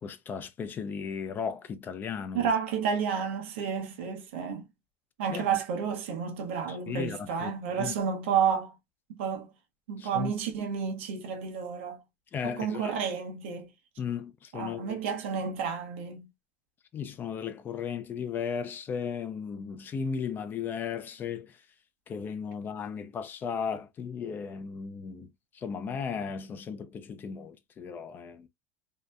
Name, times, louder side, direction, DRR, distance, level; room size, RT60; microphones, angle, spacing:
voice 1, 0.0-2.5 5.3-5.5 6.7-7.5 7.8-7.9 10.0-10.3 12.3-12.9 14.0-15.0 16.9-21.7 22.1-28.5, left 6 dB, 35° left, 0.4 m, -35 dB
voice 2, 2.3-4.7 5.2-8.7 9.1-9.5 9.9-12.0 12.4-13.7 14.5-16.3, right 7 dB, 90° right, 0.7 m, -31 dB
2.7 x 2.1 x 2.3 m
supercardioid pair, 110°, 6 cm